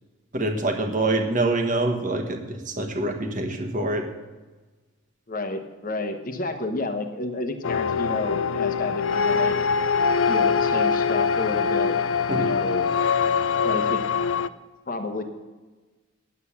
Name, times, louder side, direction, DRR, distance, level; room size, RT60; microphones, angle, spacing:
voice 1, 0.3-4.1 12.3-12.5, right 2 dB, 40° right, 4 dB, 1.4 m, -25 dB
voice 2, 5.3-9.6 10.3-11.9 12.3-12.9 13.6-14.0 14.9-15.2, left 2 dB, 40° left, 7 dB, 1.1 m, -30 dB
sound 1, 7.6-14.5, left 6 dB, 70° left, 0.4 m, -23 dB
10.0 x 8.2 x 7.1 m, 1.3 s
head